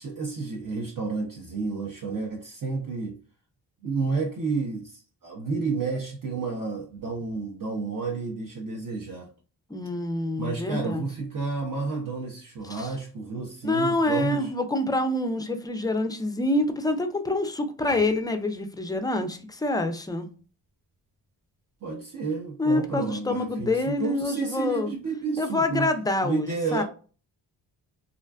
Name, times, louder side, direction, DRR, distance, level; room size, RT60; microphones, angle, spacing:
voice 1, 0.0-3.2 3.8-9.3 10.4-14.5 21.8-25.9 26.2-26.8, right 4 dB, 45° right, 0.6 m, -31 dB
voice 2, 9.7-11.0 12.7-12.9 13.6-20.3 22.6-24.9 25.4-26.8, left 2 dB, 10° left, 0.4 m, -26 dB
sound 1, 17.9-19.1, left 2 dB, 80° right, 1.3 m, -40 dB
2.5 x 2.1 x 2.3 m
supercardioid pair, 45°, 47 cm